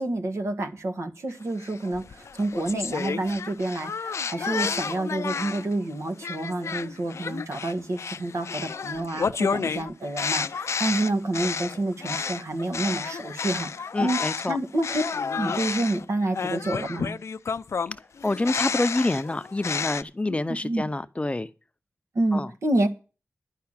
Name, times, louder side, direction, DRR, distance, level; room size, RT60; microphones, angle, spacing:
voice 1, 0.0-14.2 14.5-15.0 15.4-17.2 20.3-20.4 20.6-20.8 22.1-22.9, right 2 dB, 75° right, 1.7 m, -28 dB
sound 1, 1.6-5.7 6.2-14.5 14.8-20.0, left 5 dB, 75° left, 0.5 m, -31 dB
voice 2, 13.9-14.6 18.2-21.5 22.3-22.5, left 2 dB, 25° left, 0.7 m, -27 dB
10.5 x 5.9 x 8.7 m
cardioid pair, 60°, 5 cm